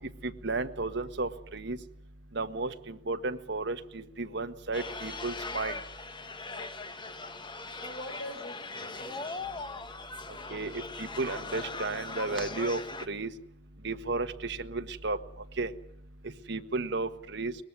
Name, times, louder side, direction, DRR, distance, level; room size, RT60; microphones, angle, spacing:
voice 1, 0.2-1.8 2.3-5.7 10.5-12.8 13.1-13.3 13.8-15.2 15.6-15.7 16.5-17.5, right 3 dB, 65° right, 8 dB, 1.4 m, -33 dB
sound 1, 4.7-13.1, left 3 dB, 25° left, 1.3 m, -40 dB
voice 2, 6.4-9.5, left 1 dB, 55° left, 4 dB, 4.1 m, -46 dB
23.0 x 20.0 x 9.8 m, 0.74 s
head